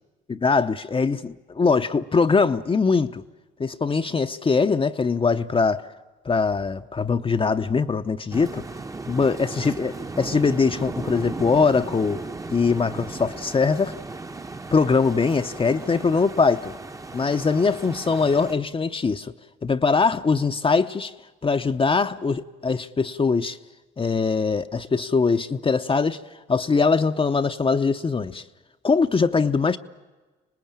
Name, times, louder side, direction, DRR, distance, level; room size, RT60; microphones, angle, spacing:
voice 1, 0.3-3.2 3.6-5.9 6.2-8.6 9.1-12.2 12.5-13.9 14.7-16.7 17.1-19.3 19.6-21.1 21.4-23.6 24.0-26.2 26.5-28.4 28.8-29.8, left 4 dB, 25° left, 0.7 m, -22 dB
sound 1, 8.3-18.5, right 3 dB, 15° right, 0.9 m, -36 dB
26.0 x 19.5 x 8.8 m
cardioid pair, 90°, 20 cm